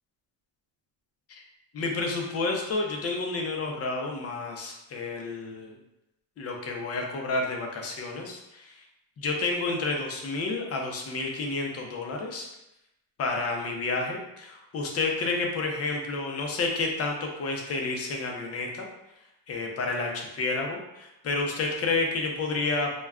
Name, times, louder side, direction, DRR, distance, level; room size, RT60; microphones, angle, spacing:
voice 1, 1.7-5.8 6.4-8.8 9.2-12.5 13.2-18.8 19.5-23.0, left 3 dB, 35° left, 1 dB, 0.4 m, -30 dB
2.2 x 2.2 x 3.5 m, 0.88 s
cardioid pair, 135°, 46 cm